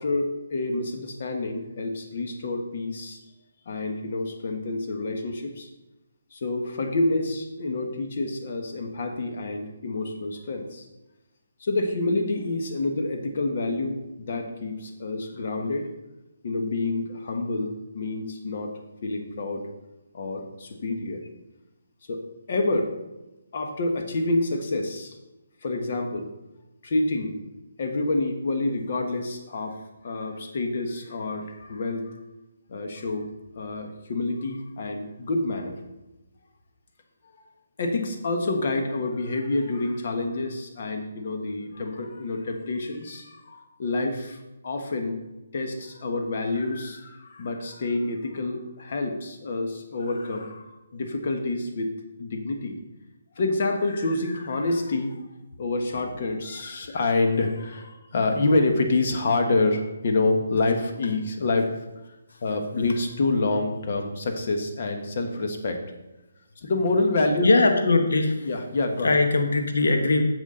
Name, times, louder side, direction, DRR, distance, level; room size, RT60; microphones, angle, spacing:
voice 1, 0.0-3.2 3.6-5.7 6.3-10.9 11.6-15.9 16.4-18.7 19.0-19.7 20.1-21.2 22.1-22.2 22.5-22.9 23.5-25.2 25.6-26.3 26.8-27.4 27.8-29.8 30.0-32.1 32.7-33.2 33.5-35.8 37.2-37.4 37.8-45.2 45.5-52.8 53.4-55.1 55.6-61.7 62.4-65.8 66.6-67.6 68.4-69.1, left 2 dB, 45° left, 4 dB, 1.3 m, -27 dB
voice 2, 67.4-68.3 69.0-70.2, left 3 dB, 80° left, 5 dB, 1.2 m, -20 dB
9.9 x 7.2 x 3.8 m, 1.0 s
hypercardioid pair, 170°, 0 cm